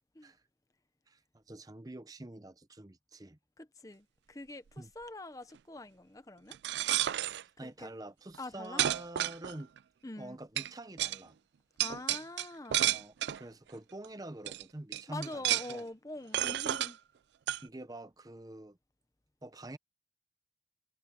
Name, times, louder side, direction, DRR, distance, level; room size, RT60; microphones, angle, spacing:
voice 1, 1.1-3.4 4.8-4.9 7.6-9.7 10.2-11.4 12.9-15.9 17.6-18.8 19.4-19.8, right 1 dB, 20° right, 0.7 m, -46 dB
voice 2, 3.6-6.6 7.6-7.9 8.4-8.8 10.0-10.4 11.8-12.9 15.1-17.0, left 2 dB, 20° left, 0.8 m, -45 dB
sound 1, 6.5-7.4 8.3-8.4 8.8-9.8 10.6-10.7 11.0-11.2 11.8-13.4 14.0-14.1 14.5-14.6 14.9-15.8 16.3-16.9 17.5-17.6, right 13 dB, 80° right, 0.3 m, -31 dB
head